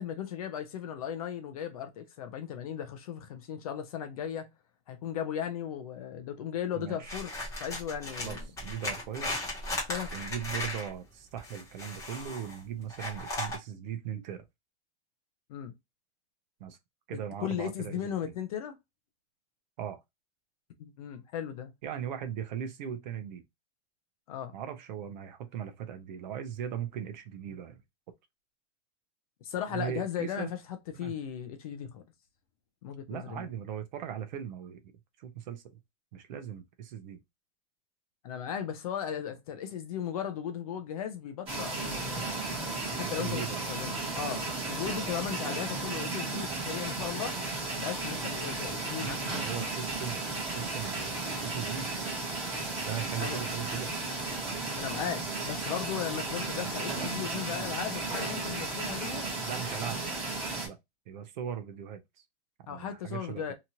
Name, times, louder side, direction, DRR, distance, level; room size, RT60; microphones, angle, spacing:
voice 1, 0.0-4.5 4.9-7.3 7.6-8.5 9.7-10.1 15.5-15.7 17.1-18.7 20.8-21.7 24.3-24.5 29.4-30.6 31.0-32.0 32.8-33.5 38.2-42.3 42.9-47.3 47.8-49.7 53.2-53.4 54.8-59.3 62.7-63.5, left 9 dB, 35° left, 0.4 m, -36 dB
voice 2, 6.7-7.2 8.2-9.3 10.1-14.5 16.6-16.8 17.1-18.3 19.8-20.0 21.8-23.4 24.5-27.8 29.7-30.5 30.9-31.2 33.1-34.8 35.2-35.8 36.1-37.2 43.0-43.6 49.0-51.9 52.8-54.0 59.5-60.0 60.6-60.8 61.1-62.0 62.7-63.5, right 9 dB, 40° right, 0.5 m, -39 dB
sound 1, 7.0-10.9 11.4-12.6 12.9-13.6, left 1 dB, 10° left, 0.8 m, -36 dB
sound 2, 41.5-60.7, right 3 dB, 15° right, 1.0 m, -34 dB
2.8 x 2.3 x 2.8 m
supercardioid pair, 160°, 35 cm